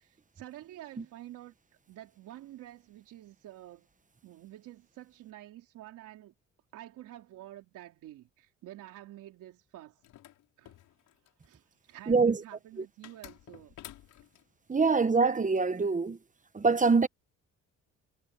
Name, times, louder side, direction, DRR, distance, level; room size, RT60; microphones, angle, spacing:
voice 1, 0.0-1.5 1.9-3.9 4.2-6.3 6.7-10.0 10.6-10.8 11.4-13.8, right 14 dB, 90° right, 3.6 m, -49 dB
sound 1, 10.0-11.5 13.0-14.4, left 13 dB, 85° left, 6.5 m, -51 dB
voice 2, 12.1-12.4 14.7-16.2 16.5-17.1, right 4 dB, 25° right, 1.2 m, -24 dB
cardioid pair, 90°, 30 cm